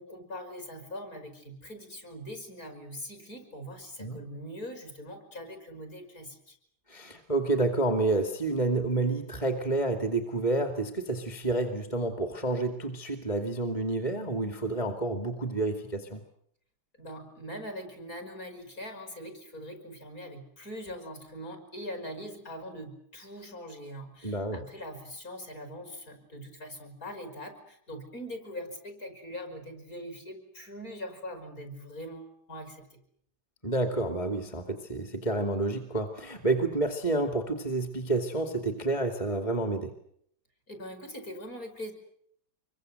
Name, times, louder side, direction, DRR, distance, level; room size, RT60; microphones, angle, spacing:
voice 1, 0.0-6.6 17.0-33.0 40.7-41.9, equal, 40° left, 6 dB, 5.8 m, -42 dB
voice 2, 6.9-16.2 24.2-24.6 33.6-39.9, right 2 dB, 15° left, 6 dB, 2.2 m, -29 dB
26.0 x 23.5 x 7.9 m, 0.69 s
omnidirectional pair, 2.4 m